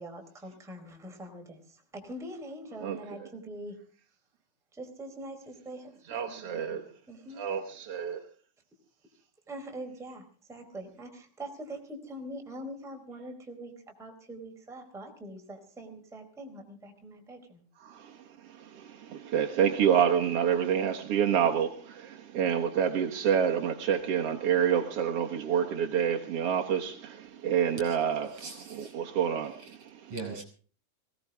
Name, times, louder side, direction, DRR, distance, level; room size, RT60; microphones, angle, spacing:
voice 1, 0.0-3.8 4.7-6.8 7.1-7.5 9.5-13.7 14.0-17.6, right 1 dB, ahead, 3.7 m, -43 dB
voice 2, 2.8-3.3 6.1-6.8 7.4-8.2 17.8-28.4 28.7-30.1, right 8 dB, 60° right, 1.7 m, -28 dB
voice 3, 28.3-28.9 30.1-30.4, right 3 dB, 35° right, 6.7 m, -40 dB
21.5 x 18.5 x 3.6 m
omnidirectional pair, 4.4 m